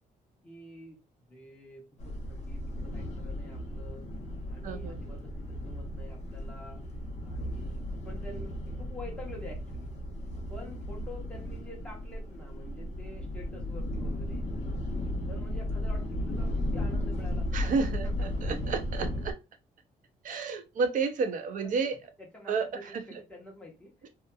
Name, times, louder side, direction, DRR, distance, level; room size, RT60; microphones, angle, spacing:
voice 1, 0.4-1.0 1.3-4.1 4.5-6.8 7.2-9.9 10.5-14.4 15.3-18.4 21.6-23.9, left 1 dB, 5° left, 0.9 m, -48 dB
sound 1, 2.0-19.3, left 1 dB, 45° left, 0.8 m, -35 dB
voice 2, 4.6-5.0 17.5-19.3 20.2-21.9 22.5-22.7 24.0-24.1, right 4 dB, 60° right, 0.5 m, -31 dB
2.7 x 2.4 x 2.3 m
cardioid pair, 145°, 15 cm